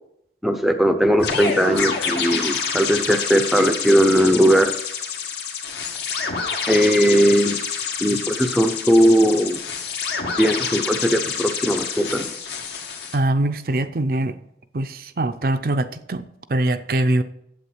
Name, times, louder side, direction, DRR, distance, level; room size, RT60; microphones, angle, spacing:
voice 1, 0.4-4.8 6.7-7.6 8.0-9.6 10.4-12.3, equal, ahead, 7 dB, 0.6 m, -18 dB
sound 1, 1.2-13.2, left 5 dB, 70° left, 1.8 m, -27 dB
voice 2, 13.1-14.4 14.7-17.2, right 1 dB, 50° right, 9 dB, 0.5 m, -23 dB
8.6 x 8.0 x 6.2 m, 0.77 s
head